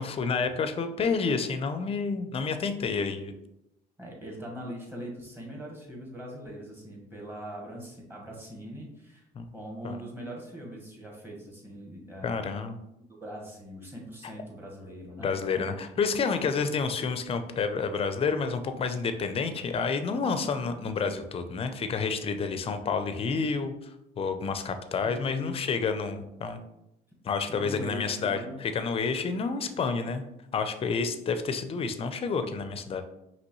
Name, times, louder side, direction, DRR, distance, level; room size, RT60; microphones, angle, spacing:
voice 1, 0.0-3.3 9.3-9.5 9.8-10.0 12.2-12.8 15.2-26.6 27.2-30.2 30.5-33.0, left 5 dB, 35° left, 9 dB, 0.5 m, -29 dB
voice 2, 4.0-9.3 9.5-12.4 13.2-15.7 25.0-25.6 27.5-28.6, equal, 15° right, -2 dB, 1.5 m, -41 dB
5.2 x 3.0 x 3.0 m, 0.87 s
cardioid pair, 110°, 17 cm